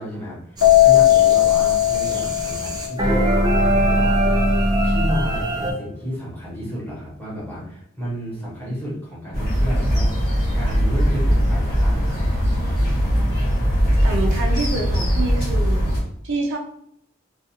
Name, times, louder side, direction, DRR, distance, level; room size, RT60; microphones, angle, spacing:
voice 1, 0.0-4.2 4.8-10.3 10.5-12.5, equal, 10° left, -7 dB, 1.0 m, -32 dB
Keyboard (musical), 0.6-3.1, left 15 dB, 90° left, 0.5 m, -16 dB
sound 1, 0.6-5.7, right 1 dB, 20° right, 0.5 m, -21 dB
sound 2, 9.3-16.0, equal, 50° left, 1.1 m, -20 dB
voice 2, 14.0-15.8 16.2-16.6, right 2 dB, 65° right, 0 dB, 0.5 m, -26 dB
2.4 x 2.4 x 2.7 m, 0.68 s
head